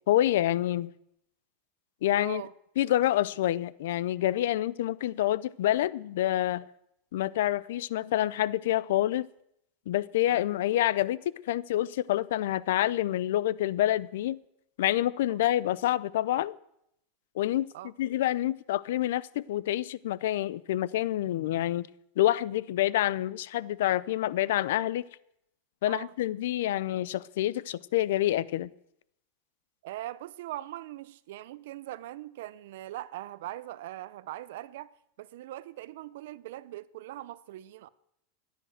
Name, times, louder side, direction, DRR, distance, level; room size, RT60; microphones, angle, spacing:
voice 1, 0.1-0.9 2.0-2.4 2.8-6.7 7.1-9.3 9.9-11.2 11.5-14.4 14.8-16.6 17.4-17.7 18.0-21.9 22.2-25.0 25.8-28.7, left 13 dB, 75° left, 0.5 m, -27 dB
voice 2, 2.2-2.5 10.3-10.5 15.3-15.4 17.7-17.9 25.9-26.1 29.8-34.9 35.2-37.9, right 15 dB, 65° right, 0.6 m, -41 dB
14.5 x 10.5 x 6.4 m
supercardioid pair, 160°, 0 cm